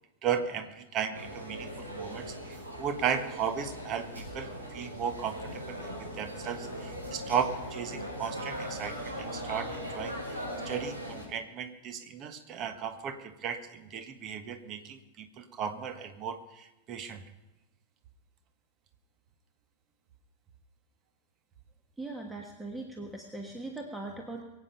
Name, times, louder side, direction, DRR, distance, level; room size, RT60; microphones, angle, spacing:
voice 1, 0.2-17.2, right 7 dB, 35° right, 8 dB, 1.4 m, -35 dB
sound 1, 1.1-11.2, equal, 80° right, 4.9 m, -39 dB
voice 2, 22.0-24.4, right 2 dB, 5° right, 2 dB, 1.4 m, -40 dB
23.0 x 8.8 x 5.4 m, 1.0 s
figure-of-eight pair, 90°, 0 cm